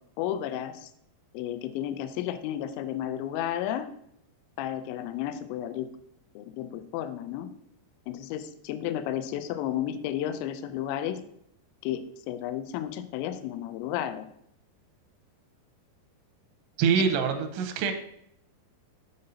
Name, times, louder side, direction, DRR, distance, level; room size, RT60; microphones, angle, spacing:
voice 1, 0.2-0.9 1.3-3.9 4.6-5.9 6.4-7.5 8.1-11.2 11.8-14.3 17.0-17.1, left 11 dB, 85° left, 10 dB, 2.8 m, -32 dB
voice 2, 16.8-17.9, right 6 dB, 90° right, 6 dB, 3.0 m, -24 dB
6.7 x 6.7 x 2.7 m, 0.72 s
omnidirectional pair, 5.3 m